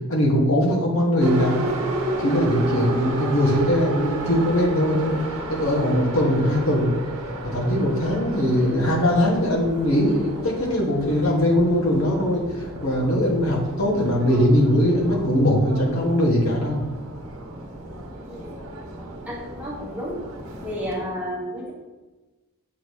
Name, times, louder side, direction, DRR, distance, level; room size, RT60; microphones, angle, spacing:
voice 1, 0.1-1.6 2.2-5.2 5.5-6.9 7.4-16.9, equal, 70° left, -2 dB, 1.4 m, -21 dB
Subway metro underground, 1.2-21.0, right 2 dB, 80° right, 0.9 m, -32 dB
voice 2, 18.3-18.6 19.2-20.2 20.6-21.7, equal, 5° right, -6 dB, 1.3 m, -32 dB
7.4 x 2.9 x 4.7 m, 1.2 s
head